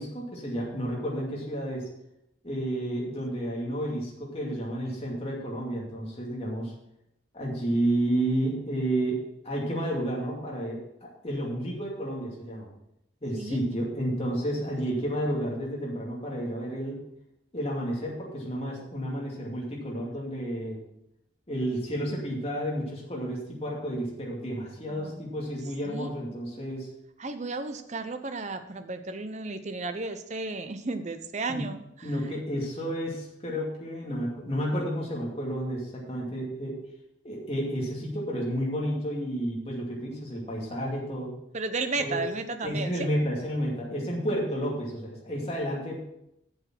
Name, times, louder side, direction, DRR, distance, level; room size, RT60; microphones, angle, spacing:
voice 1, 0.0-1.8 2.4-6.7 7.3-10.8 11.2-12.7 13.2-17.0 17.5-20.8 21.5-26.9 31.5-31.7 32.0-36.8 37.2-41.3 42.0-42.2 42.6-46.0, equal, 30° left, -3 dB, 2.4 m, -31 dB
voice 2, 24.9-25.3 25.8-26.1 27.2-32.1 41.5-43.1, right 3 dB, 35° right, 9 dB, 0.7 m, -34 dB
8.0 x 7.3 x 6.0 m, 0.80 s
head